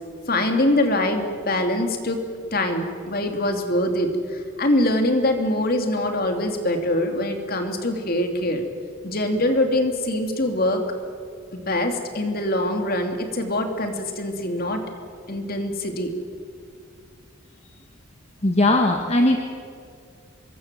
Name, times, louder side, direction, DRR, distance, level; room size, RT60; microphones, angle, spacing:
voice 1, 0.3-2.2 2.5-8.6 9.0-10.8 11.5-14.8 15.3-16.1, left 1 dB, 45° left, 5 dB, 2.8 m, -23 dB
voice 2, 18.4-19.4, left 1 dB, 30° left, 3 dB, 1.4 m, -18 dB
25.5 x 22.5 x 7.7 m, 2.2 s
head